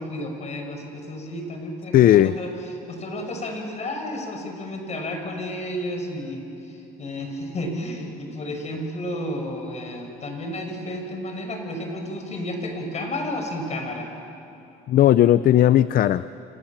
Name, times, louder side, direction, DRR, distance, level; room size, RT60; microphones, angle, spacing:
voice 1, 0.0-2.5 2.9-6.4 6.7-14.1, left 1 dB, 40° left, 4 dB, 5.9 m, -32 dB
voice 2, 1.9-2.3 14.9-16.3, left 12 dB, 60° left, 15 dB, 0.6 m, -16 dB
28.5 x 27.0 x 7.4 m, 2.8 s
cardioid pair, 110°, 17 cm